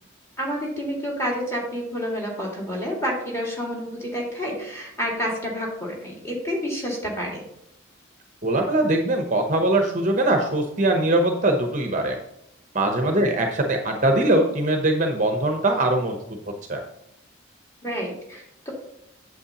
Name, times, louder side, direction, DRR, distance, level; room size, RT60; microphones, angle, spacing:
voice 1, 0.4-7.4 13.0-13.1 17.8-18.7, equal, 15° left, -3 dB, 2.0 m, -29 dB
voice 2, 8.4-12.2 12.7-16.2 16.7-16.8, right 1 dB, 35° right, 3 dB, 0.8 m, -21 dB
8.2 x 7.6 x 2.9 m, 0.79 s
head